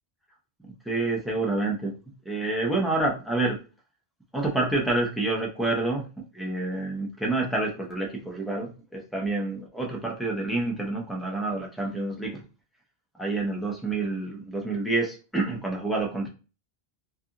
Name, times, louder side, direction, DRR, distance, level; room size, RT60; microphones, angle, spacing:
voice 1, 0.9-1.9 2.3-3.6 4.3-6.0 6.3-12.4 13.2-16.3, right 2 dB, ahead, -1 dB, 0.4 m, -28 dB
2.4 x 2.3 x 2.8 m, 0.33 s
omnidirectional pair, 1.0 m